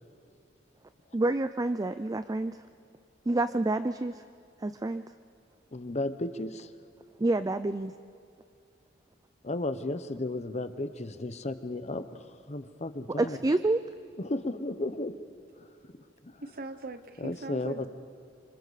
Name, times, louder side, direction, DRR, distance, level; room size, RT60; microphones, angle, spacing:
voice 1, 1.1-2.6 3.3-4.2 4.6-5.0 7.2-7.9 13.2-13.8, right 2 dB, 20° right, 11 dB, 0.4 m, -28 dB
voice 2, 5.7-6.7 9.4-13.4 14.2-15.2 15.6-15.7 16.2-16.4 17.2-17.9, left 2 dB, 35° left, 10 dB, 0.9 m, -34 dB
voice 3, 16.4-17.9, right 2 dB, 55° right, 10 dB, 1.0 m, -40 dB
26.5 x 25.5 x 4.1 m, 2.6 s
head